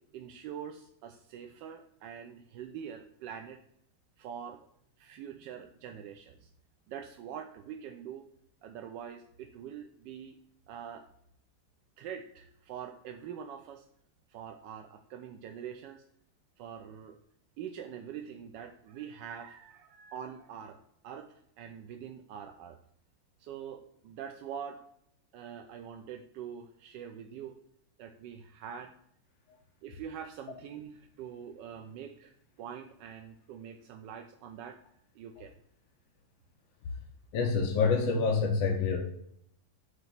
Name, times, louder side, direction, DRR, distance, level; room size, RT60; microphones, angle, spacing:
voice 1, 0.0-3.6 4.2-4.6 5.0-6.5 6.9-8.2 8.6-10.4 10.7-11.1 12.0-13.8 14.3-16.0 16.6-17.2 17.6-20.8 21.0-22.8 23.4-24.9 25.3-27.6 28.0-28.9 29.8-34.8 35.1-35.6, right 8 dB, 75° right, 5 dB, 1.1 m, -44 dB
voice 2, 37.3-39.0, left 4 dB, 70° left, 1 dB, 1.6 m, -27 dB
8.2 x 3.0 x 5.7 m, 0.72 s
omnidirectional pair, 2.2 m